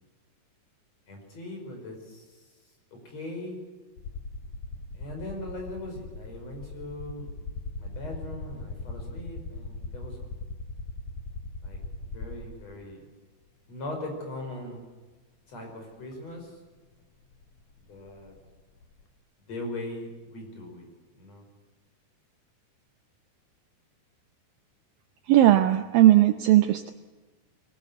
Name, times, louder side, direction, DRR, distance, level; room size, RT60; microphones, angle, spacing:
voice 1, 1.1-2.5 2.9-3.6 4.9-7.3 7.8-10.3 11.6-13.0 13.7-14.8 15.5-16.6 17.9-18.3 19.5-20.9 21.2-21.4, left 1 dB, 40° left, 3 dB, 6.4 m, -40 dB
sound 1, 4.0-12.7 13.9-14.0 16.1-16.2 16.4-19.0, left 3 dB, 60° left, 3.3 m, -39 dB
voice 2, 25.3-26.9, right 13 dB, 75° right, 8 dB, 2.3 m, -18 dB
23.5 x 20.0 x 8.2 m, 1.3 s
omnidirectional pair, 4.4 m